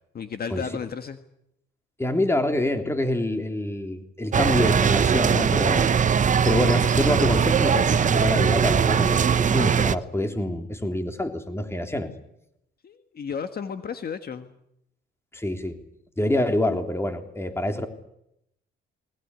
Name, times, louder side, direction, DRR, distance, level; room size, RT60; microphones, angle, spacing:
voice 1, 0.1-1.2 12.8-14.5, left 6 dB, 50° left, 8 dB, 1.7 m, -33 dB
voice 2, 2.0-5.9 6.4-12.1 15.3-15.8 16.2-17.9, left 1 dB, 10° left, 6 dB, 3.4 m, -26 dB
sound 1, 4.3-10.0, right 7 dB, 40° right, 0.9 m, -20 dB
21.0 x 20.0 x 9.8 m, 0.79 s
cardioid pair, 90°, 20 cm